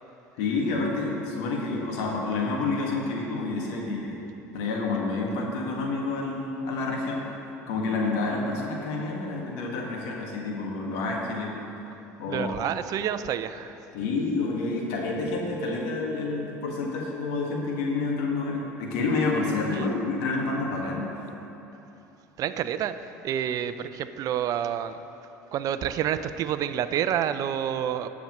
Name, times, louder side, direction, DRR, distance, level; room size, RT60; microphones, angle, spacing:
voice 1, 0.4-4.2 4.5-7.3 7.7-11.6 12.2-12.5 13.9-21.0, left 3 dB, 70° left, -1 dB, 1.8 m, -29 dB
voice 2, 12.3-13.8 19.7-19.9 22.4-25.0 25.5-28.1, right 10 dB, 50° right, 11 dB, 0.5 m, -28 dB
18.5 x 7.1 x 3.1 m, 3.0 s
hypercardioid pair, 70°, 8 cm